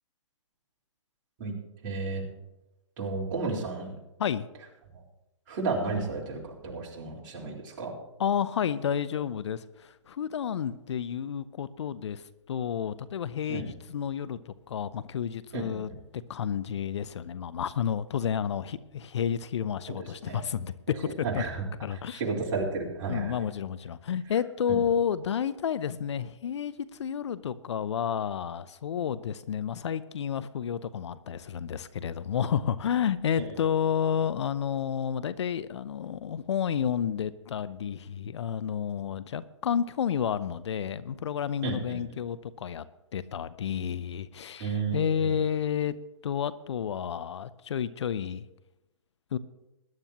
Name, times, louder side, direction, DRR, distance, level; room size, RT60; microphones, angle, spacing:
voice 1, 1.8-2.2 3.0-4.0 4.9-5.0 5.5-7.9 13.5-13.7 15.5-15.9 19.9-20.0 20.2-20.4 21.2-21.6 21.9-23.4 33.4-33.5 41.6-42.0 44.6-45.3, right 4 dB, 40° right, -3 dB, 4.1 m, -32 dB
voice 2, 8.2-21.4 21.8-22.2 23.1-42.9 43.1-45.9 46.2-48.5 49.3-49.4, left 8 dB, 60° left, 16 dB, 0.7 m, -31 dB
21.0 x 10.5 x 2.9 m, 0.98 s
hypercardioid pair, 140°, 16 cm